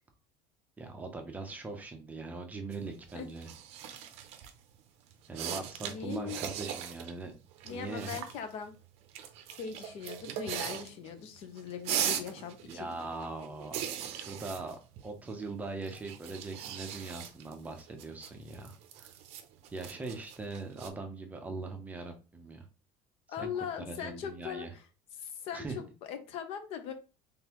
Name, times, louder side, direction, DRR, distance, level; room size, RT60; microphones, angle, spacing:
voice 1, 0.8-3.5 5.3-7.3 7.7-8.2 12.6-19.1 19.7-22.7 23.4-23.5 23.8-24.7 25.5-25.8, right 3 dB, 10° right, 4 dB, 0.6 m, -41 dB
sound 1, 2.7-4.6 5.1-7.1 7.4-8.5 9.1-11.2 11.4-15.5 15.8-20.9, right 9 dB, 55° right, 0.6 m, -39 dB
voice 2, 5.8-6.4 7.6-8.7 9.6-12.9 23.3-24.8 25.1-26.9, left 8 dB, 50° left, 8 dB, 0.8 m, -40 dB
3.9 x 3.5 x 2.9 m, 0.33 s
cardioid pair, 165°, 13 cm